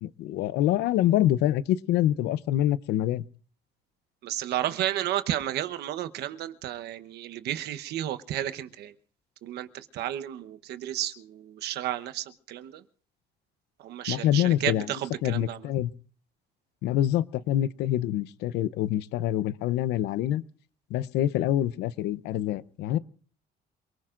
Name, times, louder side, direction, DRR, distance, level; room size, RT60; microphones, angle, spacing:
voice 1, 0.0-3.3 14.1-14.9 15.2-15.9 16.8-20.4 20.9-23.0, left 12 dB, 85° left, 18 dB, 0.7 m, -26 dB
voice 2, 4.2-8.9 9.4-12.8 13.8-15.7, right 12 dB, 75° right, 11 dB, 1.0 m, -32 dB
28.0 x 19.5 x 2.5 m, 0.42 s
cardioid pair, 110°, 17 cm